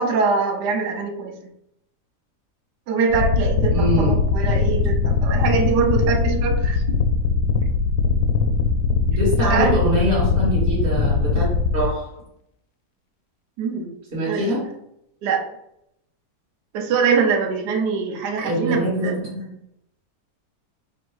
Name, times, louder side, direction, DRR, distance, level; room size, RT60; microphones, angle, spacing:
voice 1, 0.0-1.4 2.9-7.0 9.5-9.8 13.6-13.9 14.3-14.5 15.2-15.5 16.7-19.2, right 5 dB, 80° right, 4 dB, 1.2 m, -23 dB
sound 1, 3.1-11.9, left 4 dB, 90° left, 1.2 m, -20 dB
voice 2, 3.7-4.2 9.1-11.4 11.7-12.1 14.1-14.6 18.4-19.5, right 1 dB, 35° right, -8 dB, 1.7 m, -23 dB
3.6 x 2.6 x 4.6 m, 0.78 s
omnidirectional pair, 1.8 m